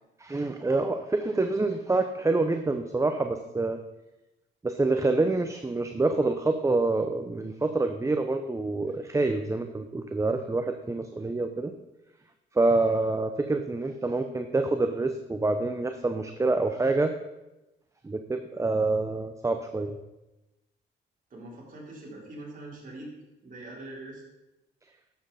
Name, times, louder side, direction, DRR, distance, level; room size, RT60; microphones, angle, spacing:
voice 1, 0.2-3.8 4.6-11.7 12.5-17.1 18.0-20.0, right 3 dB, 15° right, 7 dB, 0.7 m, -27 dB
voice 2, 21.3-23.1 23.4-24.2, right 2 dB, 45° right, -4 dB, 3.9 m, -43 dB
11.0 x 7.6 x 4.2 m, 0.99 s
cardioid pair, 90°, 20 cm